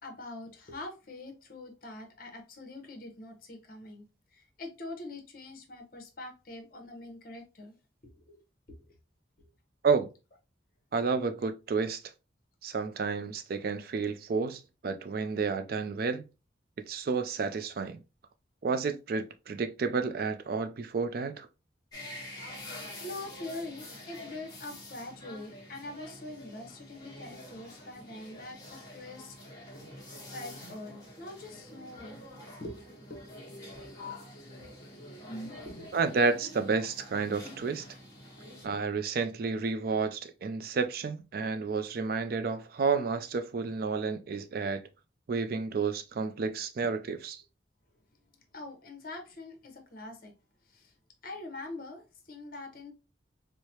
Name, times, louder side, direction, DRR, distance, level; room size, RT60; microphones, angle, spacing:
voice 1, 0.0-4.0 4.3-7.7 8.1-8.4 8.7-8.8 23.0-29.4 30.3-32.3 32.6-32.8 33.1-33.3 33.7-34.3 34.6-34.7 35.2-36.0 48.5-50.3 50.7-50.9 51.2-52.9, left 2 dB, 50° left, 0.9 m, -44 dB
voice 2, 10.9-12.0 12.6-16.2 16.9-18.0 18.6-21.5 35.9-37.9 38.6-44.8 45.3-47.4, right 4 dB, 50° right, 0.3 m, -30 dB
sound 1, 21.9-38.7, left 1 dB, 20° left, 1.2 m, -47 dB
4.6 x 2.1 x 2.8 m
head